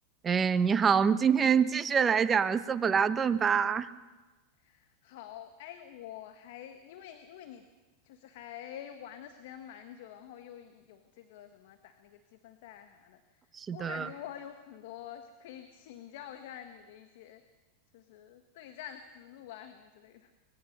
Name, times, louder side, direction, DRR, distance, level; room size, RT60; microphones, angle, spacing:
voice 1, 0.2-3.9 13.6-14.1, right 6 dB, 25° right, 12 dB, 1.2 m, -25 dB
voice 2, 4.6-7.6 8.0-13.4 13.7-17.4 17.9-20.3, left 10 dB, 65° left, 8 dB, 1.6 m, -47 dB
24.5 x 21.0 x 6.7 m, 1.2 s
hypercardioid pair, 105°, 0 cm